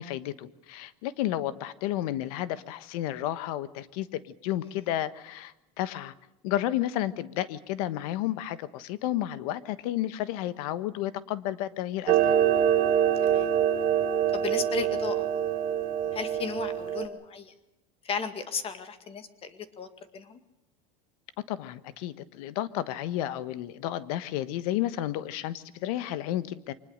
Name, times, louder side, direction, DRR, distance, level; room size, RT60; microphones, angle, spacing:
voice 1, 0.0-6.1 6.4-12.3 21.5-26.7, left 13 dB, 75° left, 14 dB, 1.3 m, -32 dB
Clock, 12.1-17.0, right 10 dB, 50° right, 3.1 m, -25 dB
voice 2, 14.3-15.2 16.1-17.5 18.0-19.9 20.1-20.4, left 5 dB, 30° left, 10 dB, 2.1 m, -35 dB
24.5 x 20.0 x 6.5 m, 0.93 s
supercardioid pair, 140°, 19 cm